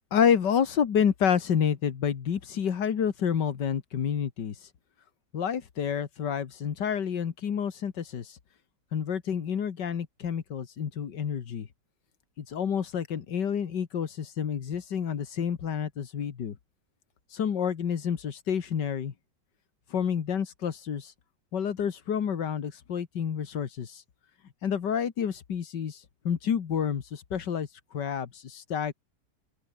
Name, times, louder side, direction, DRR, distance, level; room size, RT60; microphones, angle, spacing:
voice 1, 0.1-4.6 5.3-8.4 8.9-11.7 12.4-16.6 17.3-19.1 19.9-21.1 21.5-24.0 24.6-26.0 26.2-27.7 27.9-28.9, left 8 dB, 80° left, 2.2 m, -29 dB
open air
omnidirectional pair, 1.9 m